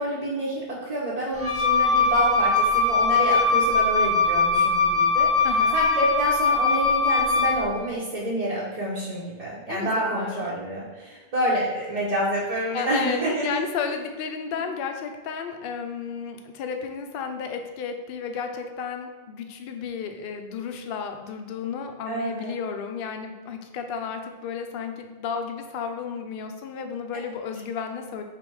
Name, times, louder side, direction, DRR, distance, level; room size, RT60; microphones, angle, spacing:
voice 1, 0.0-13.6 22.1-22.6, right 1 dB, 35° right, -8 dB, 0.8 m, -28 dB
Wind instrument woodwind instrument, 1.3-7.7, left 4 dB, 25° left, 0.3 m, -21 dB
voice 2, 5.4-5.8 9.7-10.4 12.7-28.2, left 6 dB, 60° left, 5 dB, 0.6 m, -32 dB
3.5 x 3.3 x 4.7 m, 1.3 s
omnidirectional pair, 1.2 m